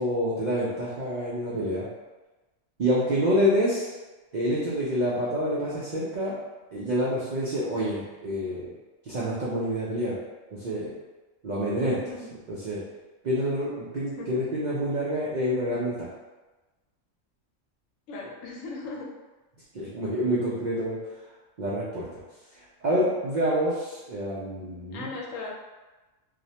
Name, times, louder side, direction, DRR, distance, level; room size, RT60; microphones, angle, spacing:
voice 1, 0.0-1.9 2.8-3.9 4.3-6.4 6.7-8.7 9.1-10.2 10.5-10.9 11.4-12.0 12.5-12.8 13.2-16.1 19.7-21.0 21.6-22.1 22.8-25.1, equal, 75° right, -8 dB, 0.4 m, -27 dB
voice 2, 18.1-19.1 24.9-25.5, left 3 dB, 90° left, -2 dB, 1.0 m, -37 dB
2.4 x 2.0 x 2.7 m, 1.2 s
omnidirectional pair, 1.3 m